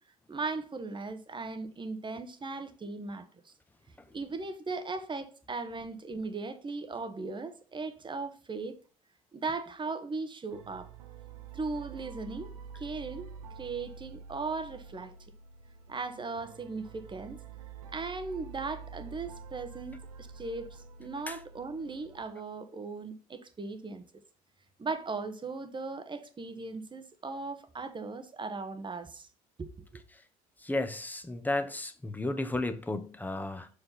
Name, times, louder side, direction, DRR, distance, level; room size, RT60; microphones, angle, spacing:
voice 1, 0.3-3.5 4.1-8.8 9.3-10.9 11.5-12.5 12.7-15.1 15.9-17.4 17.9-24.0 24.8-29.3 29.6-29.7, right 3 dB, 25° right, 1.2 m, -38 dB
sound 1, 10.5-22.2, right 6 dB, 85° right, 0.8 m, -48 dB
voice 2, 30.6-33.7, left 2 dB, 10° left, 1.1 m, -33 dB
6.3 x 5.0 x 5.6 m
hypercardioid pair, 60°, 19 cm